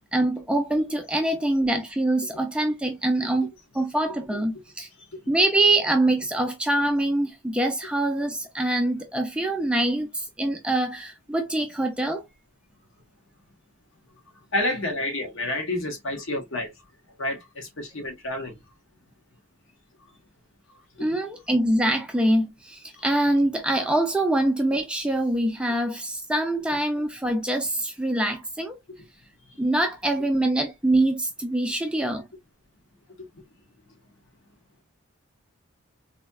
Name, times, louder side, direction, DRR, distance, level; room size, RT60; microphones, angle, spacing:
voice 1, 0.0-4.9 5.3-12.2 21.0-28.8 29.6-32.3, right 1 dB, 5° right, 0.4 m, -24 dB
voice 2, 14.3-18.6 20.0-20.1 20.7-21.1 22.9-23.0 29.4-29.6 33.2-33.4, left 1 dB, 65° left, 1.1 m, -31 dB
4.0 x 2.7 x 2.2 m
head